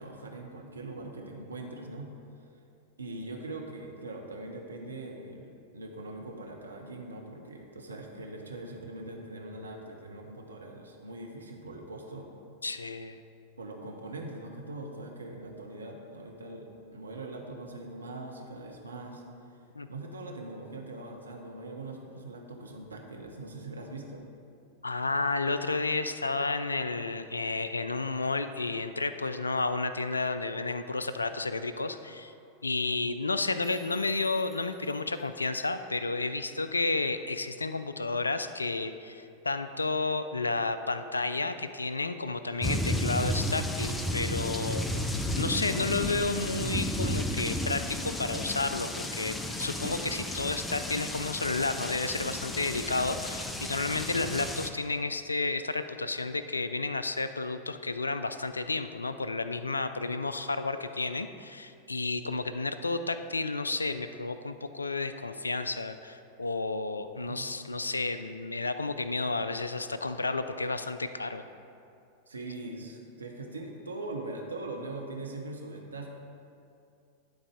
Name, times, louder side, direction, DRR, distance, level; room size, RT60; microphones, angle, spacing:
voice 1, 0.0-2.1 3.0-12.3 13.6-19.2 19.9-24.3 67.3-67.5 72.3-76.1, right 2 dB, 75° right, 1 dB, 0.7 m, -41 dB
voice 2, 12.6-13.2 19.7-19.9 24.8-32.3 32.6-71.5, left 3 dB, 80° left, 11 dB, 0.3 m, -31 dB
sound 1, 33.6-35.3, right 2 dB, 10° right, 1.5 m, -58 dB
sound 2, 42.6-54.7, left 1 dB, 10° left, 0.5 m, -33 dB
11.0 x 4.0 x 4.8 m, 2.6 s
figure-of-eight pair, 90°, 0 cm